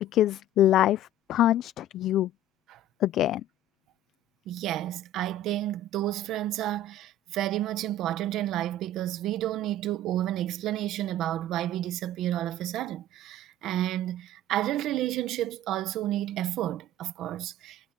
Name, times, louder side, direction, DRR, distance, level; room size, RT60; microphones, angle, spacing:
voice 1, 0.0-2.3 3.0-3.4, left 13 dB, 65° left, 0.4 m, -24 dB
voice 2, 4.5-17.9, right 13 dB, 75° right, 1.0 m, -31 dB
cardioid pair, 145°, 0 cm